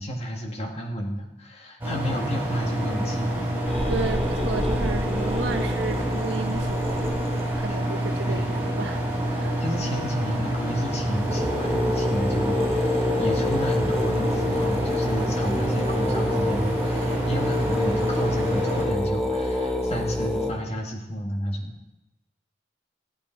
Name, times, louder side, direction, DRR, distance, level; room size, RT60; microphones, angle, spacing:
voice 1, 0.0-3.5 4.0-4.2 7.7-7.8 8.2-8.6 9.6-21.7, equal, 35° left, 1 dB, 1.7 m, -31 dB
sound 1, 1.8-18.8, right 1 dB, 10° right, 4.2 m, -27 dB
sound 2, 3.7-7.6 10.3-10.5 10.8-10.9 11.1-20.5, left 1 dB, 5° left, 1.4 m, -28 dB
voice 2, 3.9-7.1 7.6-9.0 9.3-9.6, right 3 dB, 85° right, 6 dB, 1.2 m, -33 dB
15.0 x 8.7 x 4.5 m, 1.0 s
head